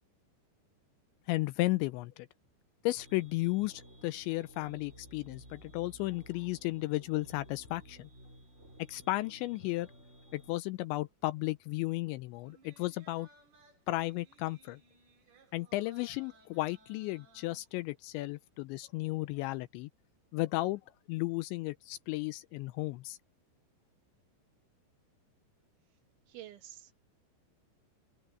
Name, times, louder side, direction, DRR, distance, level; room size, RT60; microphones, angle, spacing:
voice 1, 1.3-2.3 2.8-8.1 8.9-9.9 10.3-13.3 13.9-14.8 15.5-19.9 20.3-20.8 21.1-23.2, left 19 dB, 85° left, 2.8 m, -34 dB
sound 1, 3.0-10.6, right 1 dB, 15° right, 4.2 m, -55 dB
sound 2, 12.4-18.1 18.5-18.6, right 3 dB, 55° right, 5.9 m, -63 dB
voice 2, 26.2-26.9, right 12 dB, 75° right, 4.3 m, -49 dB
open air
omnidirectional pair, 5.5 m